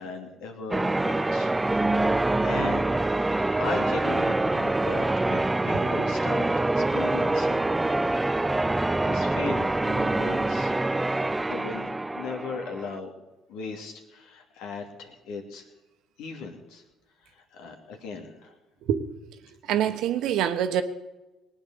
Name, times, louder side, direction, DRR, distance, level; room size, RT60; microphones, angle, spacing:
voice 1, 0.0-1.5 2.0-2.9 3.6-6.5 6.8-7.7 8.1-8.4 8.8-10.7 11.5-13.1 13.5-15.6 16.2-16.8 17.4-18.5, left 4 dB, 80° left, 4 dB, 2.7 m, -38 dB
Church bell, 0.7-13.0, right 2 dB, 15° right, 0.4 m, -25 dB
voice 2, 19.7-20.8, right 10 dB, 75° right, 9 dB, 1.3 m, -25 dB
19.5 x 8.9 x 7.0 m, 1.0 s
supercardioid pair, 70°, 0 cm